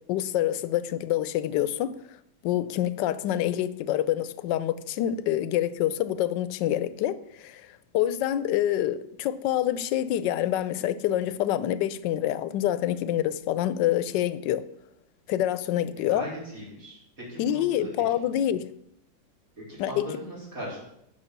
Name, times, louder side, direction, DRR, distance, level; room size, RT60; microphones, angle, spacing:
voice 1, 0.1-1.9 2.4-7.2 7.4-7.6 7.9-14.6 15.3-16.3 17.4-18.7 19.8-20.1, left 12 dB, 80° left, 1.2 m, -26 dB
voice 2, 16.1-17.9 19.6-20.8, equal, 50° right, 4.0 m, -38 dB
8.5 x 5.7 x 6.7 m
omnidirectional pair, 1.9 m